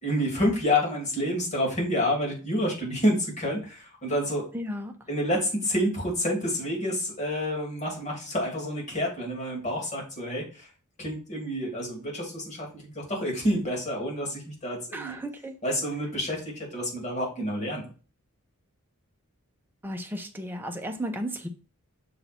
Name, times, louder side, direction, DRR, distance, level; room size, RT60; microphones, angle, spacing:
voice 1, 0.0-4.5 5.1-10.7 11.0-15.2 15.6-17.8, equal, 30° left, 2.9 m, -28 dB
voice 2, 4.5-4.9 14.9-15.6 19.8-21.5, equal, 10° right, 0.9 m, -34 dB
6.8 x 3.8 x 4.4 m
head